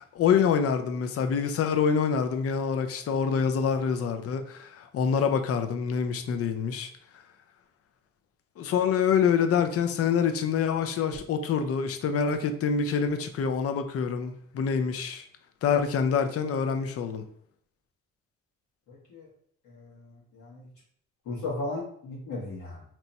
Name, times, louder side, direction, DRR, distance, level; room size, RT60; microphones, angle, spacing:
voice 1, 0.0-6.9 8.6-15.3 15.6-17.2, left 6 dB, 50° left, 0.5 m, -26 dB
voice 2, 18.9-19.3 19.6-20.7 21.2-22.8, left 2 dB, 85° left, 1.3 m, -36 dB
3.0 x 2.2 x 4.0 m
cardioid pair, 90°, 30 cm